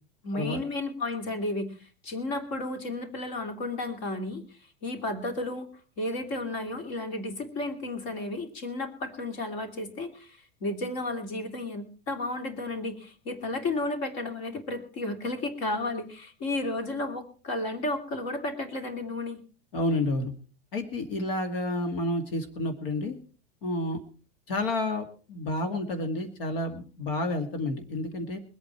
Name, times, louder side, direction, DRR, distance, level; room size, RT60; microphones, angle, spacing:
voice 1, 0.2-4.4 4.8-5.7 6.0-19.4, left 2 dB, 40° left, 6 dB, 2.8 m, -33 dB
voice 2, 19.7-20.3 20.7-23.2 23.6-24.0 24.5-28.4, left 1 dB, 65° left, 6 dB, 2.2 m, -30 dB
23.5 x 8.8 x 4.5 m, 0.38 s
supercardioid pair, 175°, 31 cm